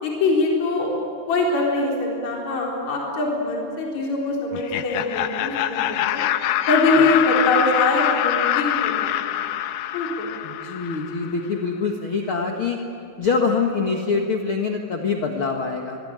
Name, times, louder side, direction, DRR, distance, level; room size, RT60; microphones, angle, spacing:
voice 1, 0.0-0.9 1.3-6.2 6.7-9.5 9.9-10.3, left 2 dB, 45° left, -2 dB, 5.0 m, -23 dB
Laughter, 4.5-11.3, left 12 dB, 75° left, 2.5 m, -24 dB
voice 2, 10.4-12.8 13.2-16.0, left 4 dB, 60° left, 2 dB, 1.4 m, -24 dB
25.5 x 23.0 x 8.9 m, 2.6 s
omnidirectional pair, 4.9 m